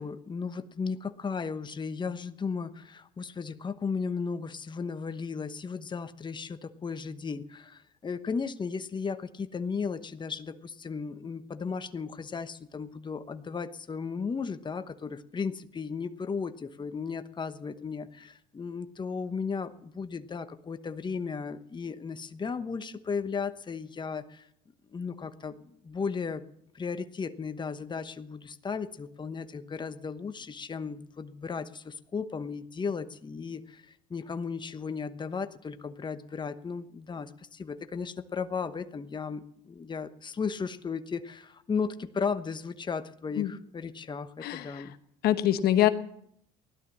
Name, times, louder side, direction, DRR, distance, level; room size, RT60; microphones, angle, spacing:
voice 1, 0.0-24.5 24.9-26.4 26.7-44.9, left 5 dB, 25° left, 10 dB, 1.1 m, -35 dB
voice 2, 45.2-45.9, left 12 dB, 65° left, 11 dB, 1.1 m, -23 dB
16.5 x 12.0 x 7.3 m, 0.73 s
supercardioid pair, 75°, 17 cm